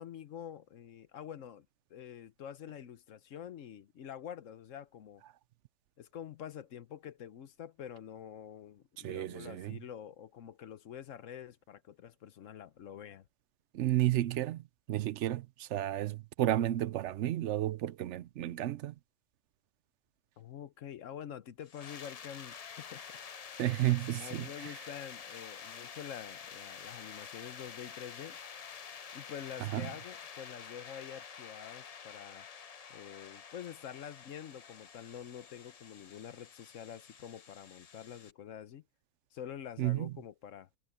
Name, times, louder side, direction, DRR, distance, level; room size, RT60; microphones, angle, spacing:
voice 1, 0.0-5.2 6.0-13.3 20.4-23.0 24.2-28.4 29.1-32.5 32.9-38.8 39.3-40.7, left 9 dB, 70° left, 1.1 m, -47 dB
voice 2, 9.0-9.8 13.7-18.9 23.6-24.8 29.6-29.9 39.8-40.1, right 14 dB, 65° right, 0.8 m, -32 dB
sound 1, 21.6-38.3, left 7 dB, 50° left, 0.4 m, -49 dB
omnidirectional pair, 1.4 m